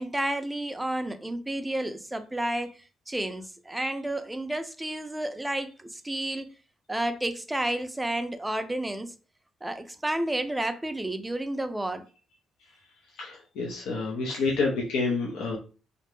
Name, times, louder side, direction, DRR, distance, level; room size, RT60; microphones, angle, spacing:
voice 1, 0.0-6.5 6.9-9.1 9.6-12.1 14.3-14.4, right 1 dB, 10° right, 0.4 m, -31 dB
voice 2, 13.2-15.6, left 3 dB, 85° left, 0.6 m, -28 dB
2.5 x 2.1 x 3.0 m
cardioid pair, 90°, 0 cm